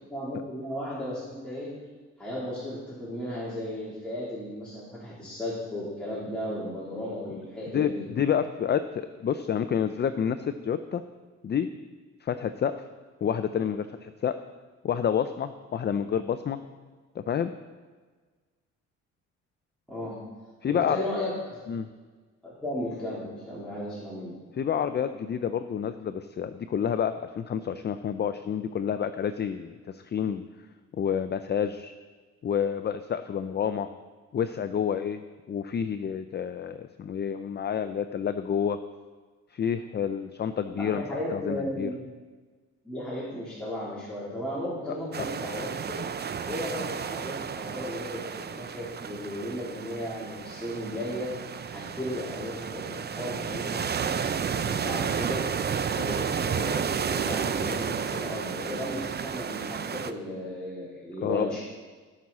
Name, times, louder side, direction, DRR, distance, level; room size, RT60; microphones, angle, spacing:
voice 1, 0.1-1.7 2.2-8.0 19.9-20.2 20.7-21.6 22.4-24.3 40.7-42.0 42.8-46.0 46.4-51.3 51.7-55.5 55.8-61.6, left 1 dB, 5° left, -10 dB, 3.4 m, -35 dB
voice 2, 7.7-11.0 11.4-11.7 12.2-12.8 13.2-14.4 14.8-16.6 17.1-17.5 20.6-21.0 21.7-21.9 24.6-30.4 30.9-31.9 32.4-33.9 34.3-38.8 39.5-41.9 61.2-61.5, left 8 dB, 35° left, 10 dB, 0.5 m, -29 dB
sound 1, 45.1-60.1, right 7 dB, 35° right, 0.6 m, -32 dB
18.0 x 6.2 x 4.2 m, 1.4 s
cardioid pair, 90°, 30 cm